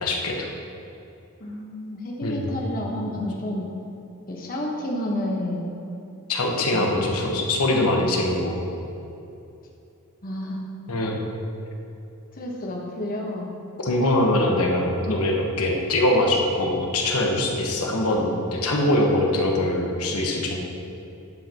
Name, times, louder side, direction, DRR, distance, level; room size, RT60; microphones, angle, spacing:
voice 1, 0.0-0.5 2.2-2.5 6.3-8.6 10.9-11.2 13.8-20.6, left 1 dB, 75° left, 0 dB, 1.2 m, -23 dB
voice 2, 1.4-3.7 4.3-5.7 6.7-6.9 10.2-10.6 12.3-13.5, left 1 dB, 40° left, -2 dB, 1.3 m, -30 dB
10.5 x 7.4 x 3.0 m, 2.8 s
head